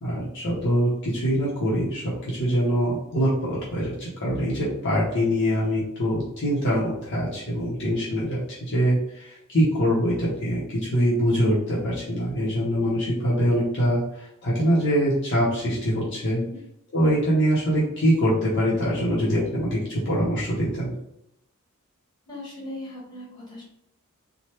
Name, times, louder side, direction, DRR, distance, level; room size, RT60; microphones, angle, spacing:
voice 1, 0.0-16.4 16.9-20.9, equal, 55° left, -7 dB, 0.8 m, -24 dB
voice 2, 16.3-16.6 22.3-23.6, left 1 dB, 20° left, -7 dB, 1.4 m, -38 dB
3.2 x 2.2 x 2.9 m, 0.80 s
head